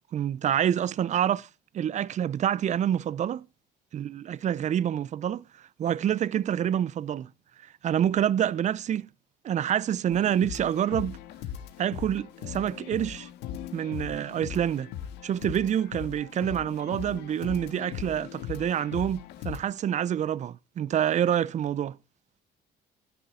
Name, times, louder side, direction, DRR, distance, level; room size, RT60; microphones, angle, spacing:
voice 1, 0.1-1.5 1.7-3.5 3.9-5.4 5.8-7.3 7.8-9.1 9.4-11.2 11.8-13.3 13.7-14.9 15.2-22.0, right 10 dB, 45° right, 0.5 m, -27 dB
sound 1, 10.1-19.6, left 9 dB, 85° left, 1.7 m, -39 dB
16.5 x 10.5 x 3.8 m
cardioid pair, 110°, 17 cm